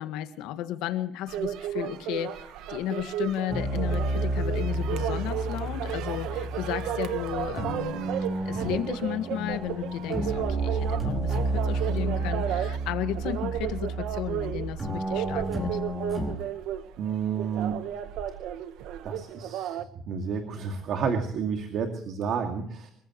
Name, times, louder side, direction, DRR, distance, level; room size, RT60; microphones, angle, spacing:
voice 1, 0.0-8.0 8.4-15.8, left 12 dB, 80° left, 9 dB, 1.7 m, -34 dB
sound 1, 1.3-19.8, right 11 dB, 75° right, 1.2 m, -34 dB
sound 2, 3.5-16.3, right 2 dB, 20° right, 4.3 m, -31 dB
voice 2, 17.0-17.8 19.0-19.8 20.1-22.9, right 6 dB, 55° right, 4 dB, 2.3 m, -30 dB
27.5 x 15.0 x 3.1 m, 0.66 s
cardioid pair, 135°, 0 cm